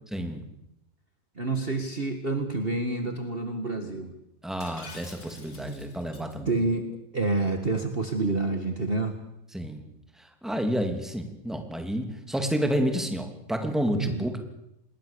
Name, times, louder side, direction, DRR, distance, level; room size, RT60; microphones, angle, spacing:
voice 1, 0.1-0.4 4.4-6.6 9.5-9.8 10.2-14.4, equal, ahead, 4 dB, 2.7 m, -30 dB
voice 2, 1.4-4.1 6.5-6.9 7.1-9.1 14.0-14.2, right 3 dB, 35° right, 5 dB, 1.9 m, -28 dB
Shatter, 4.6-6.3, left 3 dB, 60° left, 3.6 m, -47 dB
26.5 x 21.0 x 6.9 m, 0.85 s
omnidirectional pair, 1.8 m